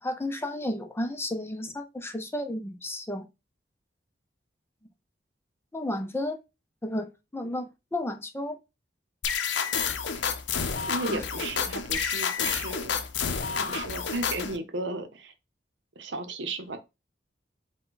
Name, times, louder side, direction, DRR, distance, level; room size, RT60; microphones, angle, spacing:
voice 1, 0.0-3.2 5.7-6.4 6.8-8.6 11.1-11.2, left 1 dB, 15° left, 0.5 m, -32 dB
sound 1, 9.2-14.6, left 6 dB, 75° left, 0.5 m, -29 dB
voice 2, 10.6-13.0 13.5-15.3 16.0-16.8, right 2 dB, 80° right, 0.7 m, -35 dB
4.6 x 2.2 x 3.9 m
head